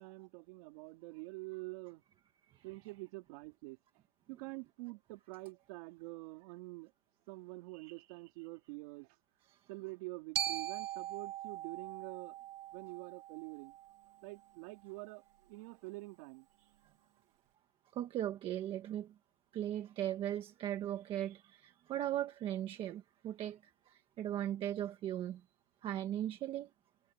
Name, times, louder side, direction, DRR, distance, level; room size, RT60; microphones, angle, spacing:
voice 1, 0.0-2.0 2.6-3.8 4.3-6.9 7.3-9.2 9.7-12.4 12.7-13.8 14.2-16.5, right 25 dB, 30° right, 4.0 m, -47 dB
voice 2, 7.7-8.0 9.5-9.6 17.9-19.1 19.5-25.4 25.8-26.7, right 11 dB, 15° right, 1.4 m, -38 dB
Glockenspiel, 10.4-14.5, right 11 dB, 50° right, 2.3 m, -41 dB
hypercardioid pair, 165°, 35 cm